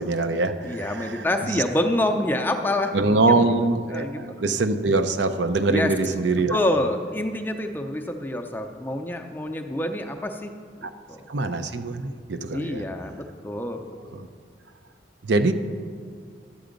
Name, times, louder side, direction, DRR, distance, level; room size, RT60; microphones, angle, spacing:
voice 1, 0.0-1.6 2.9-6.6 10.8-10.9 11.3-12.8 14.1-14.3 15.2-15.5, right 3 dB, 70° right, 8 dB, 0.6 m, -23 dB
voice 2, 0.6-3.5 3.9-4.4 5.7-5.9 6.5-10.5 10.8-11.2 12.5-14.2, left 1 dB, 10° left, 4 dB, 0.5 m, -27 dB
11.5 x 7.8 x 5.2 m, 2.1 s
head